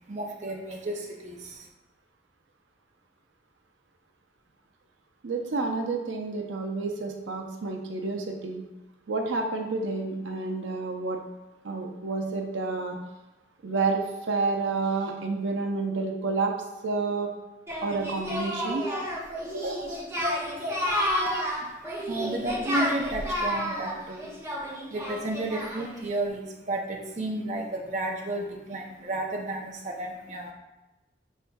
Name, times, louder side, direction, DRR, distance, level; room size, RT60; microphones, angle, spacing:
voice 1, 0.1-1.7 21.6-21.7 22.1-24.3 24.9-30.5, right 1 dB, 40° right, 0 dB, 0.6 m, -32 dB
voice 2, 5.2-8.6 9.1-11.2 11.6-13.0 13.6-16.5 16.8-17.3 17.8-18.8 19.5-19.9, right 3 dB, 85° right, 3 dB, 0.6 m, -29 dB
Singing, 17.7-26.0, equal, 15° right, 1.0 m, -30 dB
6.7 x 3.5 x 2.3 m, 1.1 s
head